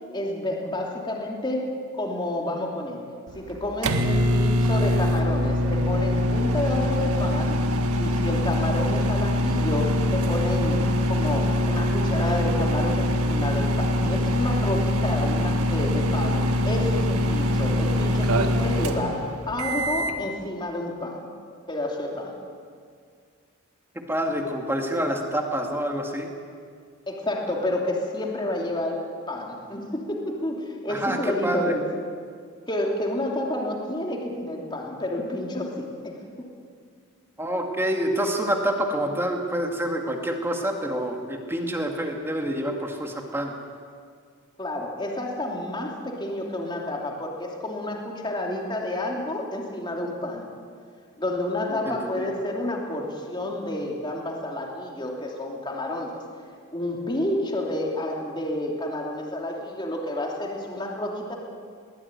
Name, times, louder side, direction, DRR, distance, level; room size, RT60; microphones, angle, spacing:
voice 1, 0.1-3.0 3.3-7.6 7.9-21.3 21.7-22.4 27.1-29.0 29.3-31.9 32.7-36.5 44.6-50.5 51.2-56.2 56.7-61.4, left 1 dB, 20° left, 0 dB, 2.9 m, -30 dB
sound 1, 3.3-20.2, left 1 dB, 85° right, 1.7 m, -23 dB
voice 2, 24.1-26.3 30.9-31.2 31.4-31.7 37.4-43.5 51.9-52.3, right 1 dB, 10° right, 2 dB, 2.2 m, -27 dB
22.0 x 18.5 x 9.8 m, 2.1 s
head